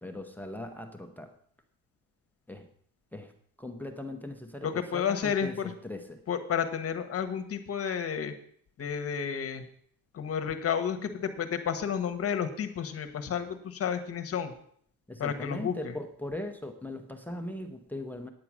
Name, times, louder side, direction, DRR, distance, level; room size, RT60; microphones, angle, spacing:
voice 1, 0.0-1.3 2.5-2.7 3.1-3.3 3.6-6.2 15.1-18.3, left 1 dB, 5° left, 6 dB, 0.7 m, -39 dB
voice 2, 4.6-5.7 6.3-8.3 8.8-9.6 10.1-14.5 15.2-15.9, left 7 dB, 40° left, 7 dB, 1.2 m, -31 dB
9.5 x 8.6 x 6.2 m, 0.62 s
cardioid pair, 160°, 35 cm